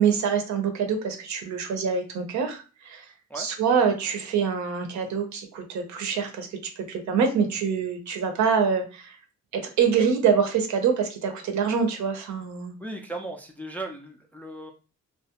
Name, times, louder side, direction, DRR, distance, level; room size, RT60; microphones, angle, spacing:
voice 1, 0.0-3.0 3.4-6.5 6.8-9.2 9.5-12.7, right 6 dB, 65° right, 5 dB, 0.6 m, -25 dB
voice 2, 12.8-14.7, right 2 dB, 5° left, 1 dB, 0.3 m, -36 dB
2.3 x 2.0 x 2.8 m, 0.35 s
cardioid pair, 90°, 30 cm